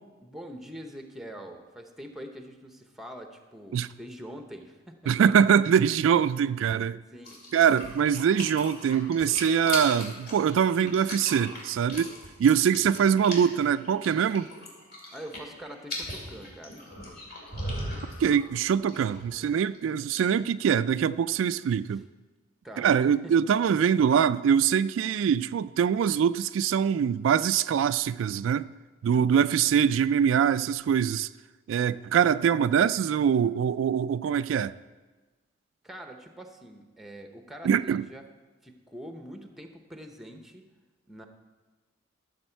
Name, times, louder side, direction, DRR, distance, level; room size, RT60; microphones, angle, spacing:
voice 1, 0.2-5.1 7.1-7.4 12.7-13.0 15.1-16.8 21.9-22.0 22.6-23.3 35.8-38.2 38.6-40.6 41.1-41.3, equal, ahead, 0.9 m, -44 dB
voice 2, 5.1-7.0 7.5-12.1 12.4-14.5 18.2-22.1 22.8-28.7 29.0-31.3 31.7-34.8 37.6-38.1, right 8 dB, 85° right, 0.3 m, -23 dB
sound 1, 7.3-19.8 20.0-20.2, left 1 dB, 55° left, 2.8 m, -38 dB
13.5 x 7.2 x 4.5 m
head